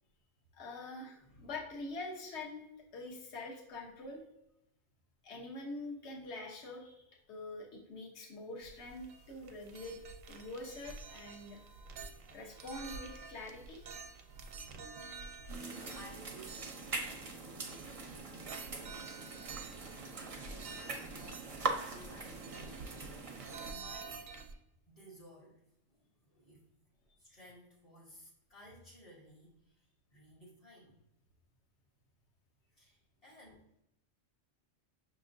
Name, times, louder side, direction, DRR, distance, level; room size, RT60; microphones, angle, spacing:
voice 1, 0.5-2.6 2.9-4.2 5.2-10.0 10.3-11.6 12.3-13.8, left 2 dB, 65° left, -1 dB, 1.2 m, -45 dB
voice 2, 1.2-1.6 15.6-19.1 20.1-23.0 23.6-24.3 24.9-25.7 26.0-26.7 27.2-31.0 32.7-33.7, equal, 35° left, -6 dB, 1.0 m, -57 dB
sound 1, 8.6-24.5, right 4 dB, 90° right, 1.0 m, -50 dB
sound 2, 15.5-23.7, right 3 dB, 40° right, 0.5 m, -42 dB
6.0 x 3.0 x 2.6 m, 0.85 s
omnidirectional pair, 1.3 m